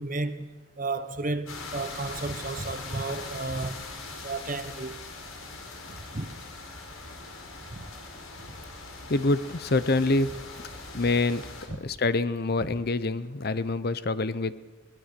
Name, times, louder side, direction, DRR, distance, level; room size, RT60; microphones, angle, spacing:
voice 1, 0.0-3.8 4.2-5.0 6.1-6.3 7.7-7.8 11.7-11.8, right 3 dB, 40° right, 1.2 m, -33 dB
sound 1, 1.5-11.7, left 3 dB, 75° left, 4.9 m, -41 dB
voice 2, 9.1-10.4 10.9-11.5 11.8-14.5, left 2 dB, 45° left, 0.7 m, -26 dB
23.0 x 19.0 x 6.8 m
head